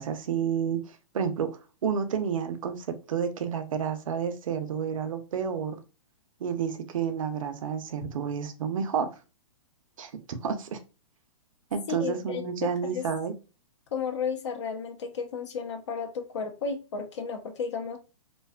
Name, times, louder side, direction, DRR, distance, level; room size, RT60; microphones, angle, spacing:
voice 1, 0.0-1.5 1.8-5.8 6.4-9.1 10.0-10.8 11.7-13.3, right 7 dB, 90° right, 8 dB, 0.5 m, -30 dB
voice 2, 11.9-13.0 13.9-18.0, left 6 dB, 60° left, 5 dB, 0.6 m, -33 dB
2.5 x 2.3 x 2.2 m, 0.32 s
hypercardioid pair, 175°, 17 cm